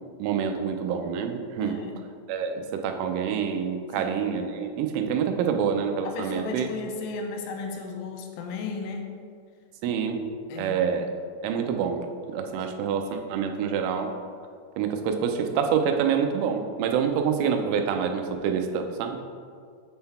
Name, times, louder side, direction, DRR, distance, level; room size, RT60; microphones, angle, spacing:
voice 1, 0.2-1.8 2.3-6.7 9.8-10.2 10.6-11.1 11.4-12.0 12.3-14.1 14.8-19.3, right 7 dB, 85° right, 5 dB, 3.0 m, -27 dB
voice 2, 1.6-2.0 3.9-4.3 6.0-9.1 10.5-10.8, left 4 dB, 85° left, 3 dB, 3.0 m, -35 dB
7.8 x 3.8 x 4.2 m, 2.1 s
omnidirectional pair, 5.6 m